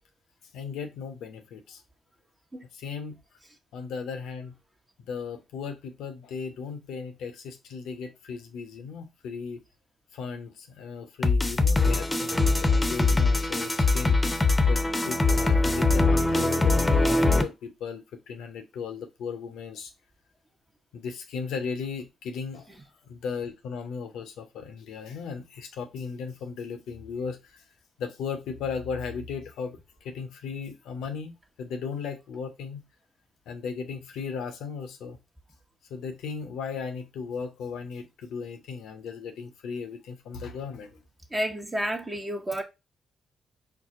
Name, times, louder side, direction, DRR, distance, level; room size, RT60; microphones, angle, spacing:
voice 1, 0.5-1.8 2.7-3.2 3.7-4.5 5.0-9.6 10.1-14.2 14.7-19.9 20.9-22.7 23.1-27.6 28.0-31.3 31.6-32.8 33.5-35.2 35.9-41.0, left 5 dB, 80° left, 0.8 m, -36 dB
sound 1, 11.2-17.4, left 3 dB, 20° left, 0.8 m, -22 dB
voice 2, 41.3-42.6, equal, 20° right, 0.9 m, -30 dB
4.7 x 2.0 x 3.6 m
supercardioid pair, 50°, 0 cm